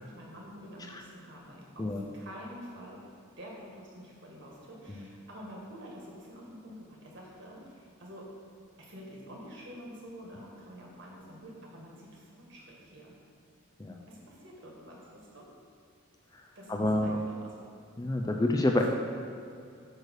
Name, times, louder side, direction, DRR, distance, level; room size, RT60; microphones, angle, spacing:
voice 1, 0.0-3.0 3.4-8.2 8.8-13.2 14.1-15.5 16.5-17.6, equal, 55° right, -3 dB, 1.7 m, -48 dB
voice 2, 16.7-17.2 18.0-18.9, left 1 dB, 15° left, 2 dB, 0.4 m, -28 dB
9.1 x 3.3 x 6.3 m, 2.4 s
head